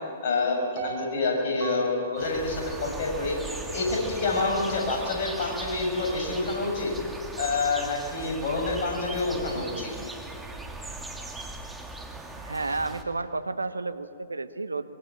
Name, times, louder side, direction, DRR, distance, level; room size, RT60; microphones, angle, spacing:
voice 1, 0.2-3.4 3.7-6.9 7.4-9.9, left 3 dB, 50° left, 0 dB, 7.3 m, -27 dB
Piano, 0.8-3.8 4.3-4.4, right 6 dB, 40° right, 2.6 m, -42 dB
sound 1, 2.2-13.0, right 2 dB, 5° right, 2.2 m, -39 dB
voice 2, 12.4-14.9, right 3 dB, 80° right, 13 dB, 1.1 m, -31 dB
23.5 x 22.5 x 7.8 m, 2.3 s
figure-of-eight pair, 115°, 0 cm